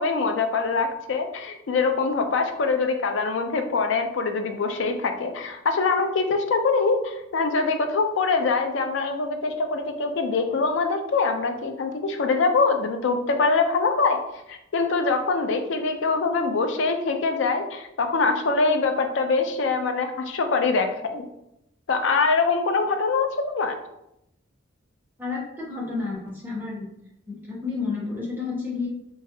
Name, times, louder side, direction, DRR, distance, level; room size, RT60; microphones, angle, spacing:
voice 1, 0.0-14.2 14.5-21.3 21.9-23.8, left 4 dB, 70° left, 6 dB, 0.4 m, -24 dB
voice 2, 25.2-26.9 27.3-28.9, left 4 dB, 10° right, -6 dB, 0.8 m, -30 dB
3.8 x 2.4 x 2.6 m, 0.83 s
head